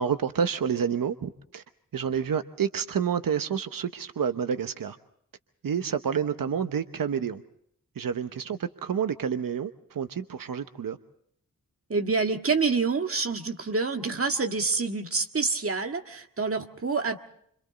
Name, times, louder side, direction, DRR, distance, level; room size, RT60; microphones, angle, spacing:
voice 1, 0.0-1.6 1.9-5.0 5.6-7.4 8.0-11.0, right 7 dB, 90° right, 9 dB, 0.9 m, -29 dB
voice 2, 11.9-17.2, right 4 dB, 45° right, 5 dB, 1.8 m, -27 dB
29.0 x 25.5 x 4.0 m, 0.68 s
wide cardioid pair, 110°, 33 cm